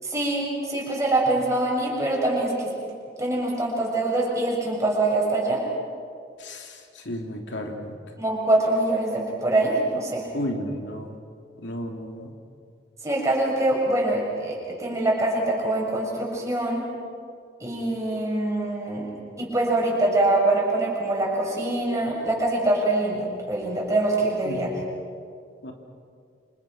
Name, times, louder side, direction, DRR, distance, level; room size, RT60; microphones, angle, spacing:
voice 1, 0.0-2.7 3.2-5.6 8.2-10.3 13.0-16.9 17.6-19.1 19.4-24.7, right 2 dB, 15° right, -3 dB, 7.0 m, -24 dB
voice 2, 6.4-8.0 10.3-11.1 11.6-12.3 24.4-24.7 25.6-25.7, left 1 dB, 90° left, 2 dB, 3.1 m, -33 dB
29.0 x 26.5 x 6.1 m, 2.3 s
head